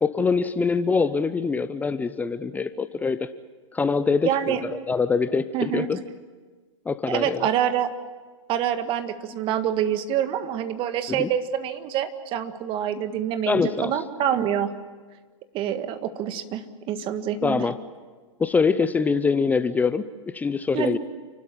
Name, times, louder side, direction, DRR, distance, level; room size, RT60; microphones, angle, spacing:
voice 1, 0.0-3.3 3.7-6.0 6.9-7.4 11.1-11.3 13.5-13.9 17.4-17.8 18.4-21.0, left 4 dB, 10° left, 13 dB, 0.6 m, -24 dB
voice 2, 4.2-4.6 5.5-5.9 7.1-7.9 8.5-14.7 15.5-17.7 20.7-21.0, right 10 dB, 30° right, 9 dB, 1.7 m, -26 dB
29.0 x 12.5 x 9.9 m, 1.4 s
hypercardioid pair, 120°, 16 cm